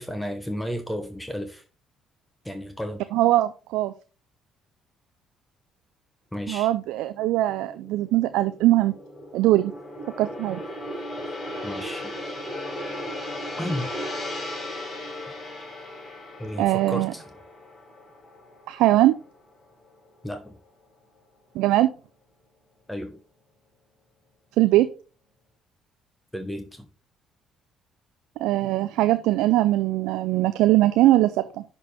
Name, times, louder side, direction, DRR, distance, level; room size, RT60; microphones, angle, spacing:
voice 1, 0.0-1.6 2.4-3.0 6.3-6.7 11.6-12.1 13.6-13.9 16.4-17.2 20.2-20.6 22.9-23.2 26.3-26.9, equal, 10° left, 6 dB, 1.1 m, -33 dB
voice 2, 3.1-3.9 6.5-8.9 9.3-9.7 10.2-10.6 16.6-17.1 18.7-19.2 21.6-21.9 24.6-24.9 28.4-31.6, right 15 dB, 70° right, 12 dB, 0.3 m, -21 dB
Gong, 7.0-19.5 19.8-20.1, left 1 dB, 40° left, 3.8 m, -37 dB
10.5 x 4.5 x 3.4 m, 0.35 s
hypercardioid pair, 50°, 0 cm